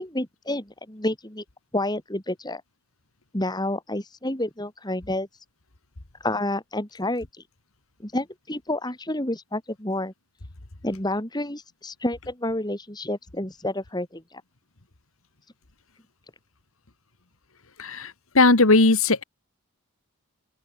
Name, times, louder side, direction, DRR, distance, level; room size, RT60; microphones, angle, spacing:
voice 1, 0.0-1.4 1.7-2.6 3.3-5.3 6.2-7.3 8.0-10.1 10.8-14.4, left 1 dB, 20° left, 2.9 m, -29 dB
voice 2, 17.8-19.2, left 3 dB, 65° left, 1.9 m, -18 dB
open air
head